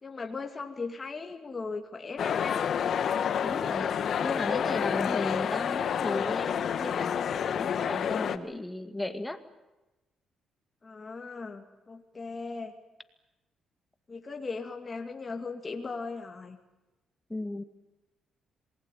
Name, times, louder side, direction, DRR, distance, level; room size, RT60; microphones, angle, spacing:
voice 1, 0.0-2.7 7.9-8.6 10.8-12.7 14.1-16.6, left 4 dB, 30° left, 3 dB, 2.6 m, -38 dB
sound 1, 2.2-8.4, left 8 dB, 60° left, 1.4 m, -29 dB
voice 2, 3.4-9.4 17.3-17.6, left 1 dB, 10° left, 9 dB, 2.2 m, -36 dB
27.0 x 20.5 x 9.4 m, 1.0 s
cardioid pair, 90°, 0 cm